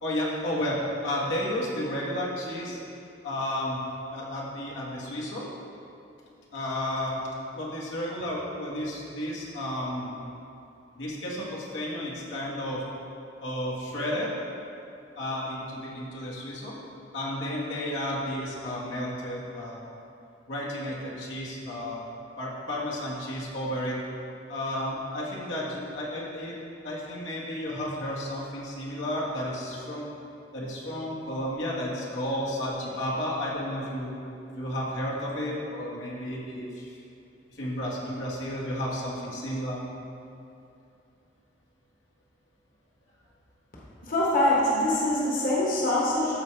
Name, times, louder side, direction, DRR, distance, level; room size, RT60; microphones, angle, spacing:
voice 1, 0.0-2.8 3.2-3.8 4.1-5.4 6.5-7.2 7.5-10.1 10.9-12.8 13.4-14.3 15.1-16.7 17.1-19.8 20.5-22.1 22.4-24.0 24.5-26.6 26.8-30.1 30.5-34.1 34.5-37.0 37.5-39.8, left 1 dB, 85° left, -5 dB, 1.6 m, -32 dB
voice 2, 44.0-46.4, left 1 dB, 50° left, -5 dB, 1.2 m, -24 dB
13.5 x 4.8 x 3.3 m, 2.6 s
head